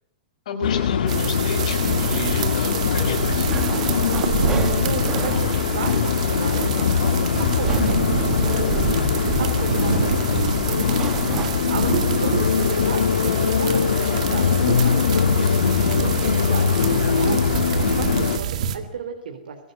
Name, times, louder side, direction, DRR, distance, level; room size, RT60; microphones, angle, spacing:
voice 1, 0.5-3.5, left 4 dB, 50° left, 6 dB, 5.3 m, -31 dB
sound 1, 0.6-18.4, left 7 dB, 75° left, 1.7 m, -22 dB
sound 2, 1.1-18.8, right 8 dB, 50° right, 2.0 m, -27 dB
sound 3, 3.5-13.4, right 6 dB, 10° right, 1.1 m, -35 dB
voice 2, 4.8-8.7 9.4-11.1 11.4-15.6 15.9-17.6 18.0-19.6, right 6 dB, 80° right, 5 dB, 3.6 m, -34 dB
23.0 x 16.5 x 9.4 m, 0.78 s
hypercardioid pair, 180°, 5 cm